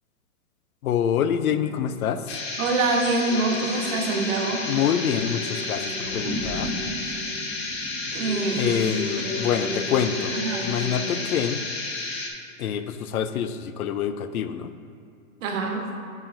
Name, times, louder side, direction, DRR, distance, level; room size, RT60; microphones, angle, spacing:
voice 1, 0.8-2.3 4.6-6.7 8.6-11.6 12.6-14.7, left 8 dB, 85° left, 11 dB, 0.6 m, -26 dB
sound 1, 1.4-2.9 3.1-11.2, left 3 dB, 5° right, 1.2 m, -36 dB
sound 2, 2.3-12.3, left 3 dB, 20° left, 0.4 m, -32 dB
voice 2, 2.6-4.6 8.1-8.8 10.3-10.7 15.4-15.8, right 3 dB, 65° right, 2 dB, 1.2 m, -25 dB
sound 3, 6.0-10.8, right 1 dB, 25° right, 1.1 m, -37 dB
9.1 x 5.7 x 2.6 m, 2.5 s
hypercardioid pair, 150°, 42 cm